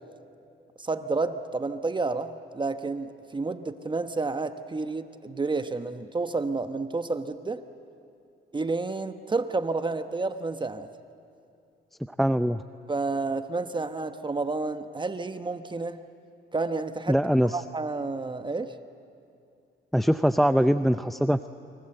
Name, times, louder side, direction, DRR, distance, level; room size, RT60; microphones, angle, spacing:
voice 1, 0.8-7.6 8.5-10.9 12.9-16.0 16.5-17.3 17.5-18.7, right 3 dB, 25° right, 9 dB, 1.0 m, -30 dB
voice 2, 12.2-12.6 17.1-17.6 19.9-21.5, equal, ahead, 12 dB, 0.5 m, -22 dB
29.5 x 24.5 x 7.8 m, 2.5 s
cardioid pair, 90°, 20 cm